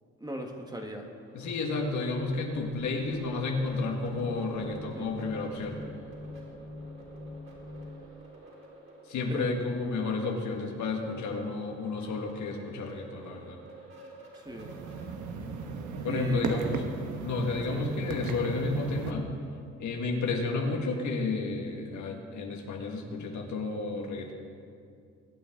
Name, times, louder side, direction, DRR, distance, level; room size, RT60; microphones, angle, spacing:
voice 1, 0.2-1.1 4.9-5.1 9.3-9.9 14.3-14.7 16.1-16.8 17.7-17.9, right 1 dB, 15° right, 2 dB, 1.5 m, -39 dB
sound 1, 1.0-17.7, right 1 dB, 40° right, 4.0 m, -51 dB
voice 2, 1.3-5.8 9.1-13.6 16.0-16.9 17.2-19.3 19.8-24.3, left 3 dB, 70° left, 2 dB, 1.8 m, -31 dB
sound 2, 2.1-8.1, left 2 dB, 25° left, 1.0 m, -44 dB
sound 3, 14.5-19.1, right 4 dB, 75° right, 1.1 m, -36 dB
22.0 x 9.0 x 3.8 m, 2.4 s
cardioid pair, 90°, 30 cm